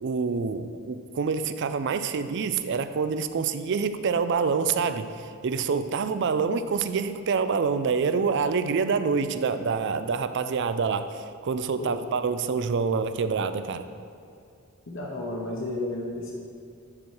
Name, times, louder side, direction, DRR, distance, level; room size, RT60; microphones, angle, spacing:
voice 1, 0.0-13.9, right 5 dB, 55° right, 11 dB, 0.4 m, -26 dB
voice 2, 14.9-16.3, left 2 dB, 60° left, -1 dB, 1.0 m, -32 dB
9.7 x 4.5 x 4.6 m, 2.5 s
head